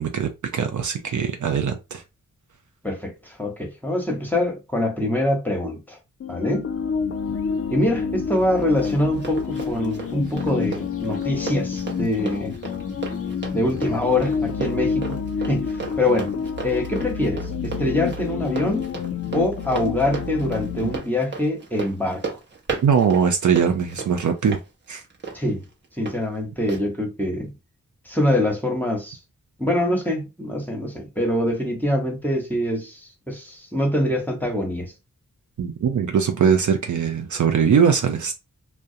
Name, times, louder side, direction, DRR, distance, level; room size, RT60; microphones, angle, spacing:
voice 1, 0.0-2.0 20.8-20.9 22.8-24.6 24.9-25.0 35.6-38.3, right 7 dB, 60° right, 0.5 m, -21 dB
voice 2, 2.8-6.0 6.3-6.7 7.7-12.6 13.5-15.2 15.5-16.3 16.6-18.9 19.3-22.4 25.3-25.6 26.0-27.5 28.1-29.2 29.6-34.9, left 1 dB, 5° left, 1.0 m, -24 dB
sound 1, 6.2-21.0, left 6 dB, 45° left, 0.5 m, -28 dB
Run, 8.4-26.2 26.7-26.8, right 5 dB, 30° right, 0.9 m, -35 dB
2.2 x 2.1 x 2.7 m
cardioid pair, 40°, 33 cm